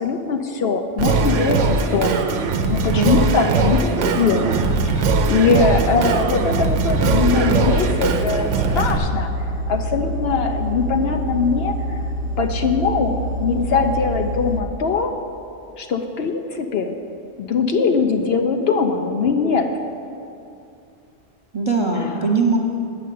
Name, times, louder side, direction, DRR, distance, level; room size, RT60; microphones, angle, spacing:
voice 1, 0.0-2.3 2.7-9.3 9.7-12.0 12.4-15.1 15.8-16.9 17.4-19.7 22.0-22.1, left 4 dB, 65° left, 6 dB, 0.8 m, -21 dB
Singing, 1.0-9.0, right 4 dB, 85° right, 1.0 m, -20 dB
voice 2, 3.0-3.4 21.5-22.6, right 3 dB, 25° right, 0 dB, 0.8 m, -20 dB
sound 1, 5.0-14.6, equal, 50° right, 1.2 m, -27 dB
8.6 x 6.5 x 8.3 m, 2.6 s
omnidirectional pair, 1.2 m